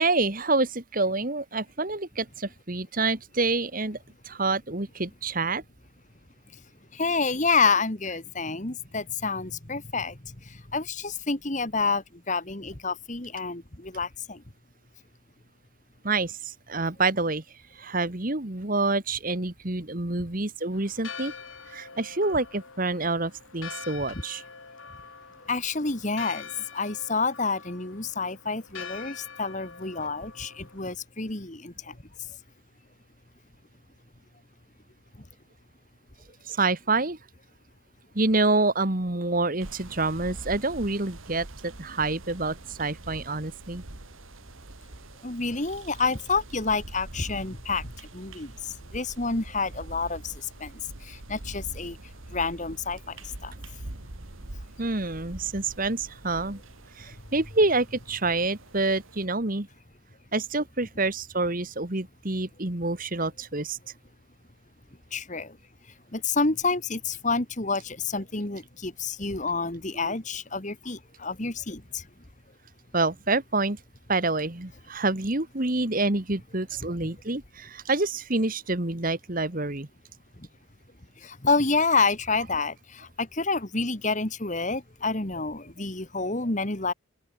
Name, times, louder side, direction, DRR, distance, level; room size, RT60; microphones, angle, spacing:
voice 1, 0.0-4.0 4.3-5.6 16.0-17.4 17.8-21.3 21.7-24.4 30.0-30.1 36.5-37.2 38.2-43.8 54.8-56.6 57.0-59.7 60.3-63.8 70.0-70.1 72.9-73.8 74.1-79.9, right 3 dB, 40° right, 1.7 m, -27 dB
voice 2, 7.0-10.1 10.7-14.4 25.5-26.4 26.7-31.7 45.2-47.8 48.1-48.5 48.9-50.3 50.6-50.7 51.3-52.0 52.3-53.0 53.4-53.5 65.1-65.5 66.1-71.8 81.4-86.9, left 4 dB, 35° left, 1.8 m, -28 dB
Church bell, 20.7-30.9, left 6 dB, 70° left, 3.8 m, -44 dB
sound 1, 39.6-59.3, right 2 dB, 75° right, 2.0 m, -44 dB
open air
head